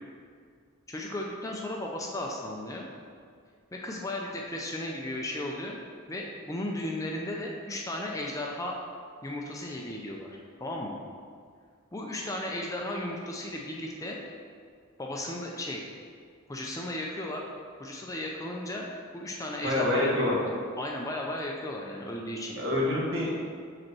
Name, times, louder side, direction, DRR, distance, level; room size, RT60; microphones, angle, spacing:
voice 1, 0.9-2.9 3.7-5.8 6.1-8.8 9.2-11.0 11.9-14.2 15.0-15.8 16.5-17.4 17.8-18.9 19.1-20.1 20.8-22.6, left 1 dB, 15° left, -1 dB, 0.5 m, -35 dB
voice 2, 19.6-20.4 22.6-23.3, left 1 dB, 60° right, -5 dB, 1.8 m, -26 dB
5.2 x 4.2 x 6.0 m, 2.1 s
head